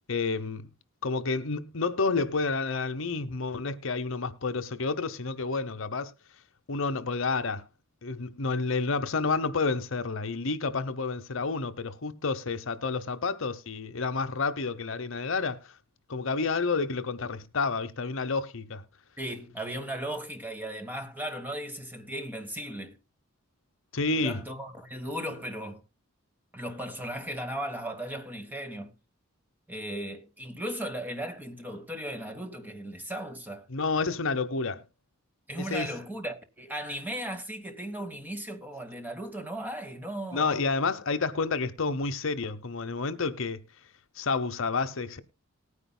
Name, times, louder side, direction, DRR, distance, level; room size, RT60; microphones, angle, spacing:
voice 1, 0.1-0.6 1.0-6.1 6.7-7.6 8.0-15.6 16.1-18.8 23.9-24.4 33.7-34.8 35.7-35.9 40.3-43.6 44.2-45.2, left 4 dB, 60° left, 0.9 m, -29 dB
voice 2, 19.2-23.0 24.1-25.8 26.5-28.9 29.7-33.7 35.5-40.6, right 1 dB, 10° right, 1.4 m, -36 dB
19.0 x 9.8 x 2.2 m
head